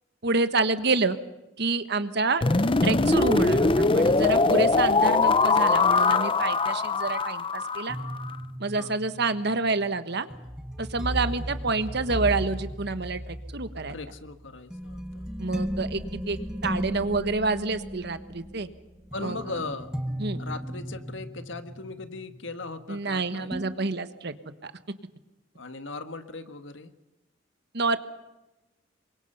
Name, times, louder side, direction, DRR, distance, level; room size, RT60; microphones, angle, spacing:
voice 1, 0.2-1.2 1.6-2.4 2.8-8.0 8.6-10.3 10.8-14.0 15.4-18.7 19.2-19.4 20.2-20.4 22.9-24.3 24.6-24.7 27.7-28.0, right 3 dB, 60° right, 11 dB, 1.4 m, -28 dB
sound 1, 2.4-8.3, left 3 dB, 30° left, 0.7 m, -22 dB
sound 2, 7.9-23.1 23.5-23.7, equal, 5° right, 1.1 m, -36 dB
voice 2, 13.9-15.3 19.1-19.9 20.4-23.5 25.5-26.9, left 3 dB, 75° left, 9 dB, 1.6 m, -38 dB
27.5 x 23.5 x 5.6 m, 1.0 s
head